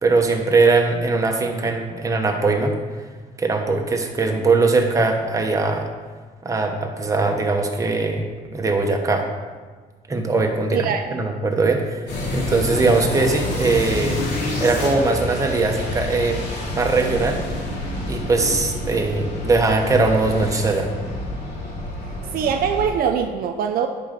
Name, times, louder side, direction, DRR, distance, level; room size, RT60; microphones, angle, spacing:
voice 1, 0.0-2.7 3.4-5.9 6.4-8.3 8.5-9.3 10.1-12.0 12.3-14.2 14.6-16.4 16.7-17.4 18.1-20.9, right 3 dB, 20° right, 2 dB, 1.1 m, -20 dB
voice 2, 10.7-11.0 22.3-23.9, right 7 dB, 60° right, 6 dB, 0.5 m, -22 dB
sound 1, 12.1-22.9, left 1 dB, 90° left, 2.2 m, -28 dB
10.5 x 3.8 x 5.2 m, 1.4 s
cardioid pair, 110°, 17 cm